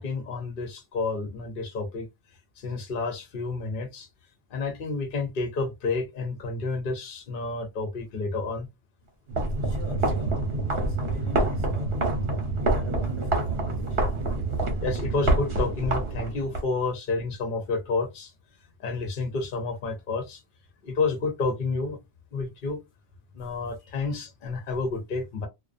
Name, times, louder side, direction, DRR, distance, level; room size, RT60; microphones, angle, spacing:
voice 1, 0.0-2.1 2.6-4.1 4.5-8.7 14.8-18.3 18.8-20.4 20.8-22.0 22.3-22.8 23.3-25.5, left 3 dB, 55° left, 0.8 m, -30 dB
sound 1, 9.3-16.6, right 2 dB, 65° right, 1.0 m, -27 dB
voice 2, 9.6-14.3, right 3 dB, 45° right, 0.5 m, -41 dB
2.3 x 2.2 x 2.4 m
omnidirectional pair, 1.1 m